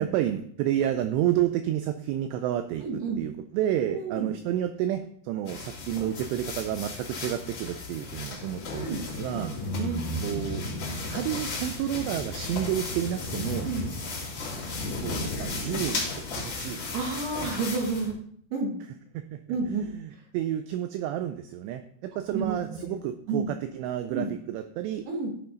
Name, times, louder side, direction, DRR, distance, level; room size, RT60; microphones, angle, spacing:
voice 1, 0.0-9.5 10.2-10.6 11.1-13.7 15.0-16.0 16.3-16.8 19.2-19.4 19.9-25.1, right 11 dB, 85° right, 9 dB, 2.5 m, -30 dB
voice 2, 2.8-3.2 3.8-4.3 8.8-9.0 9.3-10.4 13.6-13.9 16.9-18.2 18.5-18.7 19.5-19.9 22.3-23.0 23.3-23.5 24.1-24.3 25.1-25.3, right 4 dB, 65° right, 1 dB, 3.1 m, -31 dB
sound 1, 5.5-18.1, left 4 dB, 45° left, 2.3 m, -37 dB
sound 2, 8.4-17.1, left 1 dB, 85° left, 1.8 m, -36 dB
13.5 x 5.6 x 3.9 m, 0.63 s
omnidirectional pair, 5.4 m